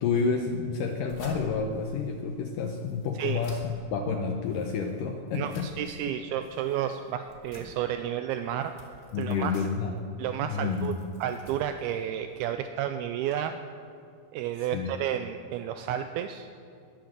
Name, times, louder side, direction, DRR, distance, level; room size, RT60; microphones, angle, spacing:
voice 1, 0.0-5.7 9.1-9.9 10.4-11.1 14.7-14.9, left 5 dB, 75° left, 4 dB, 2.0 m, -29 dB
sound 1, 0.7-12.5, left 1 dB, 30° left, 2.3 m, -50 dB
voice 2, 5.3-8.8 9.2-9.7 10.2-13.6 14.3-16.5, right 10 dB, 80° right, 8 dB, 2.4 m, -31 dB
21.0 x 7.9 x 7.4 m, 2.4 s
omnidirectional pair, 4.6 m